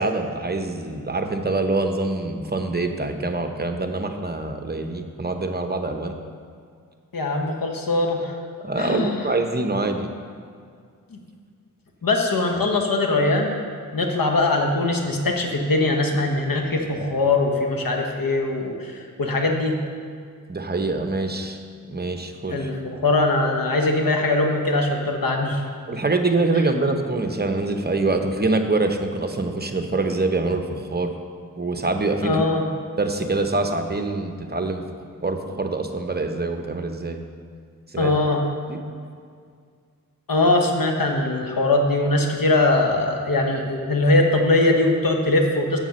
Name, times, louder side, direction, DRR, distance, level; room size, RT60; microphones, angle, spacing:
voice 1, 0.0-6.1 8.6-10.1 20.5-21.6 21.9-22.7 25.9-31.1 31.6-32.4 33.0-34.8 35.2-37.2 37.9-38.1 38.7-38.8, right 2 dB, 30° right, 5 dB, 0.8 m, -25 dB
voice 2, 7.1-8.4 8.8-9.3 11.1-11.2 12.0-13.5 13.9-19.8 22.5-25.6 32.2-32.6 38.0-38.4 40.3-45.8, left 2 dB, 75° left, 2 dB, 1.2 m, -21 dB
7.4 x 7.2 x 6.3 m, 2.2 s
wide cardioid pair, 70°, 35 cm